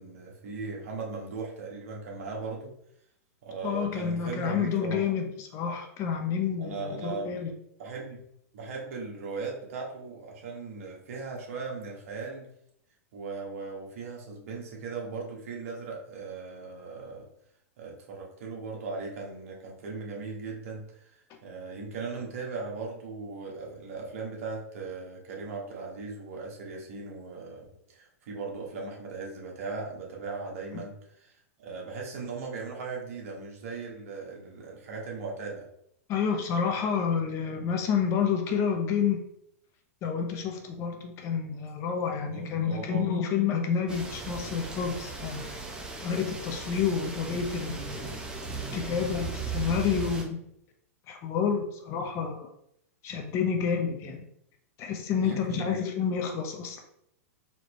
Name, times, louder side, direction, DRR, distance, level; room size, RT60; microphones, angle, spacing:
voice 1, 0.0-2.7 3.4-5.0 6.6-7.3 7.8-8.2 8.5-12.5 13.1-17.3 17.8-31.3 31.6-35.7 42.3-43.1 55.2-55.7, right 4 dB, 65° right, -1 dB, 1.4 m, -38 dB
voice 2, 3.6-5.2 5.5-7.5 36.1-39.2 40.0-45.4 46.0-48.1 48.7-50.4 51.1-52.5 53.0-54.2 54.8-56.8, left 7 dB, 35° left, 4 dB, 0.7 m, -29 dB
sound 1, 43.9-50.2, right 4 dB, 10° right, 0.7 m, -37 dB
4.2 x 3.0 x 3.1 m, 0.73 s
hypercardioid pair, 130°, 8 cm